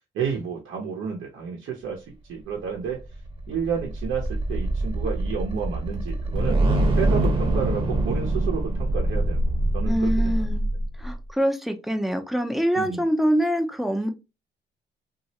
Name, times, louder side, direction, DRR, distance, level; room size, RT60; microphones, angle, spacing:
voice 1, 0.1-3.0 3.5-6.6 7.0-10.5 12.8-13.0, right 6 dB, 80° right, -1 dB, 0.8 m, -31 dB
sound 1, 2.8-11.2, right 1 dB, 25° right, 0.9 m, -24 dB
voice 2, 9.9-10.7 11.0-14.1, equal, ahead, 6 dB, 0.5 m, -24 dB
3.0 x 2.5 x 2.7 m, 0.26 s
cardioid pair, 90°, 20 cm